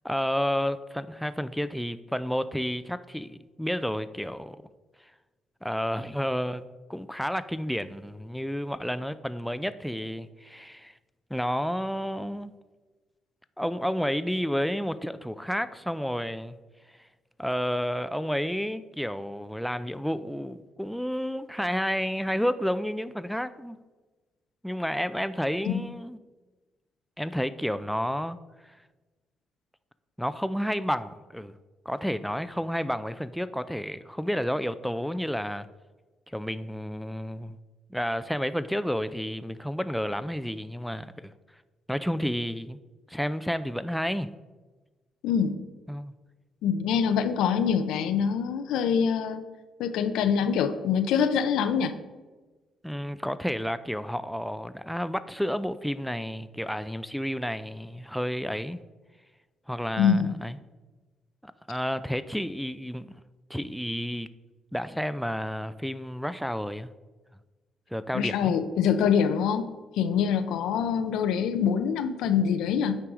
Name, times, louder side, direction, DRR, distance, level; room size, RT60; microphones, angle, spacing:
voice 1, 0.0-4.6 5.6-6.6 6.9-10.9 11.3-12.6 13.6-16.6 17.4-23.8 24.6-26.2 27.2-28.4 28.6-28.7 30.2-31.6 31.9-35.7 36.3-37.6 37.9-41.3 41.9-42.8 43.1-44.4 45.9-46.1 52.8-58.8 59.7-60.6 61.4-63.2 63.5-64.3 64.7-66.9 67.9-68.6, equal, ahead, 13 dB, 0.3 m, -31 dB
voice 2, 45.2-45.6 46.6-49.4 49.8-51.9 60.0-60.3 68.1-69.6 70.0-73.0, left 7 dB, 90° left, 10 dB, 0.5 m, -25 dB
8.9 x 4.7 x 3.6 m, 1.2 s
cardioid pair, 90°, 0 cm